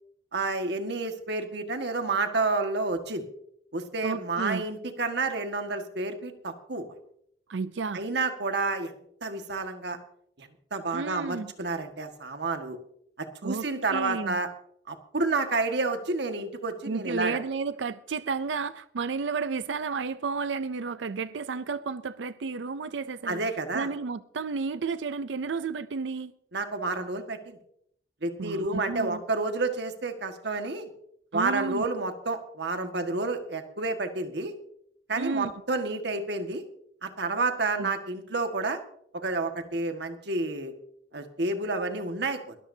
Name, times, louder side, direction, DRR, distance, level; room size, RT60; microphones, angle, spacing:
voice 1, 0.3-3.2 3.7-6.9 7.9-8.9 9.2-10.0 10.4-12.8 13.2-14.5 14.9-17.4 23.3-23.9 26.5-27.6 28.2-30.9 31.3-34.5 35.1-36.6 37.0-38.8 39.1-40.7 41.1-42.6, right 3 dB, 65° right, 1.7 m, -30 dB
voice 2, 4.0-4.7 7.5-8.0 10.9-11.5 13.4-13.6 13.9-14.4 16.9-23.4 23.7-26.3 28.4-29.2 31.3-31.9 35.2-35.5 37.8-37.9, right 4 dB, 85° right, 0.5 m, -32 dB
22.0 x 13.5 x 2.8 m
head